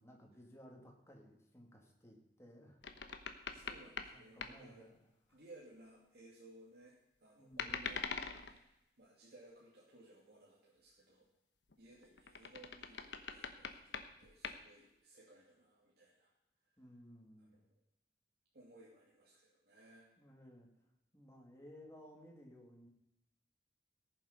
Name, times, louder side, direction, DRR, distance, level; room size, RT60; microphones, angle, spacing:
voice 1, 0.0-2.8 4.1-4.9 5.3-5.4 7.3-7.8 16.8-17.5 20.2-20.7 21.1-22.9, equal, 15° left, 0 dB, 2.3 m, -58 dB
sound 1, 2.8-4.2 4.4-4.6 7.5-8.6 11.7-14.6, left 5 dB, 90° left, 1.1 m, -44 dB
voice 2, 3.5-4.9 5.3-8.0 8.3-11.3 11.8-16.3 17.4-17.6 18.5-20.1, right 2 dB, 60° right, -5 dB, 2.6 m, -60 dB
18.5 x 7.2 x 5.2 m, 0.85 s
head